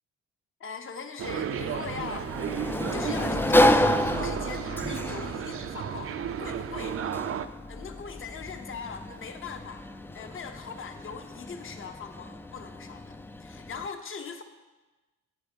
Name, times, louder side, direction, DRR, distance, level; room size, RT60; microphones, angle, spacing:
voice 1, 0.6-2.3 2.9-7.2 7.7-9.9 10.1-14.4, left 5 dB, 45° left, 7 dB, 1.1 m, -41 dB
Sliding door, 1.2-13.9, left 1 dB, 5° left, 0.4 m, -30 dB
sound 1, 1.2-7.5, right 8 dB, 45° right, 0.5 m, -34 dB
8.7 x 6.9 x 6.2 m, 1.2 s
cardioid pair, 90°, 30 cm